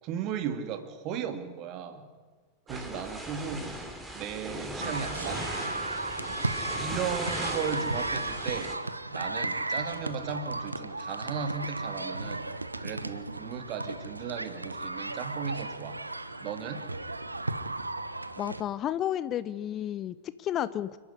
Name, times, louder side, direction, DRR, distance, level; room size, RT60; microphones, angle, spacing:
voice 1, 0.0-2.1 2.7-3.7 4.1-5.7 6.8-8.7 9.1-12.5 12.8-16.0 16.4-16.8, right 7 dB, 40° right, 9 dB, 2.3 m, -36 dB
sound 1, 2.7-8.8, right 1 dB, 5° right, 3.5 m, -38 dB
sound 2, 4.8-18.6, right 2 dB, 80° right, 1.0 m, -35 dB
voice 2, 18.4-21.0, left 11 dB, 30° left, 16 dB, 0.7 m, -32 dB
29.0 x 10.0 x 9.8 m, 1.5 s
figure-of-eight pair, 90°, 0 cm